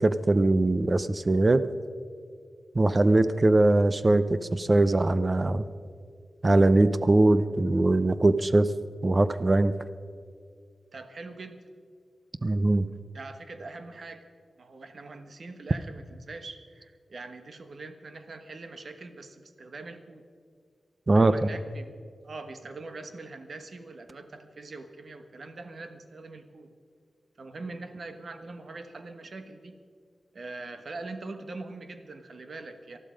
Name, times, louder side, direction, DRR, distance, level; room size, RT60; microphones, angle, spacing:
voice 1, 0.0-1.7 2.7-5.7 6.4-8.7 9.0-9.7 12.4-12.9 21.1-21.5, right 2 dB, 30° right, 13 dB, 0.6 m, -21 dB
voice 2, 10.9-11.7 13.1-14.3 14.6-20.3 21.1-26.7 27.4-29.8 30.3-33.0, right 3 dB, 60° right, 8 dB, 1.3 m, -43 dB
19.5 x 13.0 x 5.2 m, 2.1 s
wide cardioid pair, 135°, 0 cm